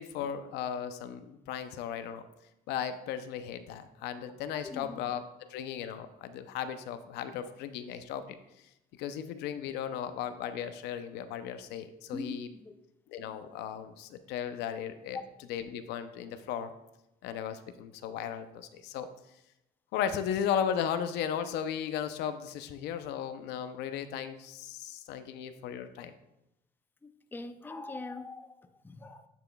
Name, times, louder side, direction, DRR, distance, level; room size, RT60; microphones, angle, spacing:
voice 1, 0.0-2.3 2.7-5.2 5.5-8.3 9.0-12.5 13.1-15.2 15.5-16.7 17.2-19.1 19.9-26.1, left 8 dB, 85° left, 10 dB, 0.6 m, -36 dB
voice 2, 4.5-5.0 12.1-12.8 13.3-13.4 15.1-15.2 25.3-25.6 27.0-29.3, left 3 dB, 10° left, 8 dB, 0.5 m, -43 dB
10.0 x 6.0 x 2.3 m, 0.87 s
cardioid pair, 110°, 17 cm